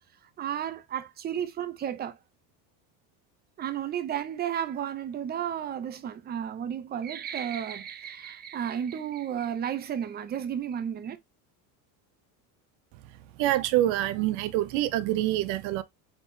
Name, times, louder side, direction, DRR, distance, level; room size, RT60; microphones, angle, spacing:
voice 1, 0.4-2.2 3.6-11.2, right 9 dB, 20° right, 0.4 m, -33 dB
voice 2, 13.4-15.8, right 14 dB, 65° right, 0.7 m, -26 dB
4.2 x 3.4 x 2.6 m
cardioid pair, 135°, 47 cm